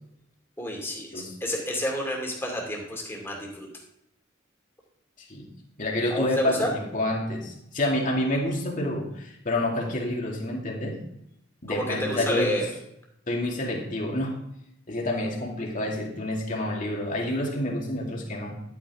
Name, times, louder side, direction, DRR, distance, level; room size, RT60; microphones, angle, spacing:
voice 1, 0.6-3.7 6.1-6.7 11.7-12.7, equal, 10° left, -1 dB, 2.5 m, -30 dB
voice 2, 5.2-5.5 5.8-11.0 11.6-12.5 13.3-14.4 14.9-18.6, left 1 dB, 40° left, -1 dB, 2.3 m, -28 dB
11.5 x 8.9 x 3.6 m, 0.78 s
head